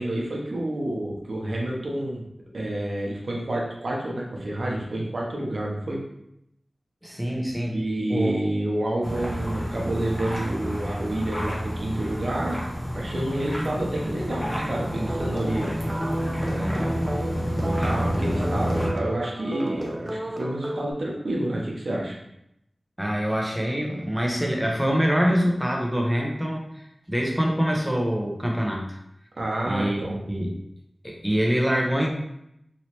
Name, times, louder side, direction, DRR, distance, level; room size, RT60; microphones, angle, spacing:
voice 1, 0.0-2.2 2.5-6.0 7.7-12.6 12.9-15.7 16.4-17.0 17.6-22.1 29.4-30.2, right 1 dB, 75° right, -3 dB, 0.7 m, -29 dB
voice 2, 7.0-7.8 8.1-8.4 23.0-29.0 29.6-30.5 31.0-32.1, equal, 5° right, -1 dB, 0.9 m, -25 dB
sound 1, 9.0-18.9, equal, 15° left, 1.1 m, -29 dB
sound 2, 14.9-20.9, right 1 dB, 30° right, 0.5 m, -33 dB
3.2 x 2.8 x 2.9 m, 0.79 s
cardioid pair, 45°, 0 cm